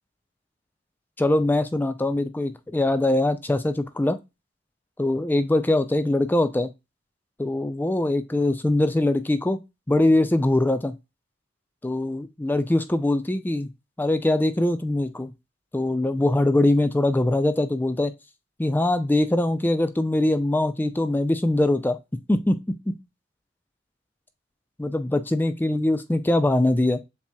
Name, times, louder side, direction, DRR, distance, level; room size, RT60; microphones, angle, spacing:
voice 1, 1.2-4.2 5.0-6.7 7.4-9.6 9.9-10.9 11.8-13.7 14.0-15.3 15.7-18.1 18.6-22.0 22.3-22.6 22.9-23.0 24.8-27.0, left 1 dB, 10° left, 0.3 m, -22 dB
7.1 x 2.8 x 2.2 m
head